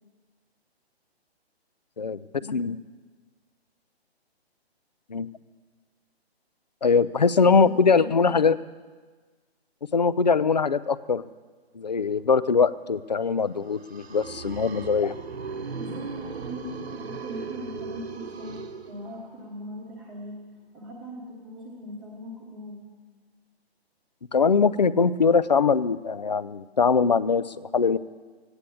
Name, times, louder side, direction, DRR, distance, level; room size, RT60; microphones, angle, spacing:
voice 1, 2.0-2.8 5.1-5.3 6.8-8.6 9.9-11.2 11.8-15.2 24.3-28.0, left 5 dB, 40° left, 17 dB, 0.4 m, -22 dB
sound 1, 13.5-19.4, right 5 dB, 75° right, 1.3 m, -37 dB
voice 2, 15.7-18.6 18.9-20.4 20.7-22.9, left 1 dB, ahead, -6 dB, 1.1 m, -40 dB
16.0 x 9.8 x 8.3 m, 1.4 s
hypercardioid pair, 175°, 32 cm